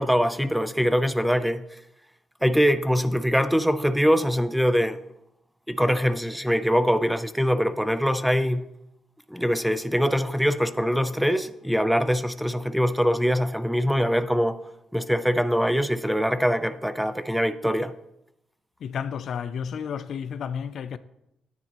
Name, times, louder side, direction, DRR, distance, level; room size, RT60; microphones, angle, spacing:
voice 1, 0.0-1.6 2.4-5.0 5.7-8.6 9.3-14.6 14.9-17.9, equal, ahead, 0.5 m, -23 dB
voice 2, 18.8-21.0, left 7 dB, 60° left, 0.4 m, -31 dB
10.0 x 9.3 x 3.0 m
cardioid pair, 90°, 0 cm